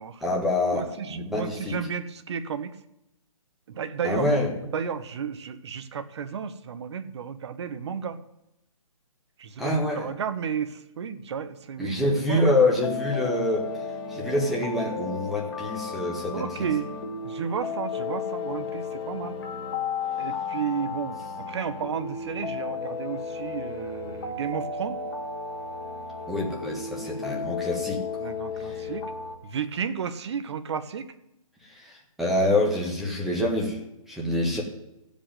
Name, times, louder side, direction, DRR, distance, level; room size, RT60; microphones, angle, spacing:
voice 1, 0.2-1.8 4.0-4.5 9.6-10.1 11.8-13.7 14.1-16.5 26.3-28.0 28.6-28.8 31.6-33.8 34.1-34.6, left 1 dB, ahead, -2 dB, 1.7 m, -26 dB
voice 2, 0.7-2.8 3.7-4.3 4.7-8.2 9.4-12.0 12.3-12.6 16.3-16.9 17.2-19.4 20.2-25.0 28.2-29.1 29.4-31.1, right 7 dB, 50° right, 11 dB, 1.0 m, -32 dB
sound 1, 12.8-29.4, left 5 dB, 40° left, 2.0 m, -34 dB
15.0 x 5.2 x 9.1 m, 0.88 s
hypercardioid pair, 145°, 18 cm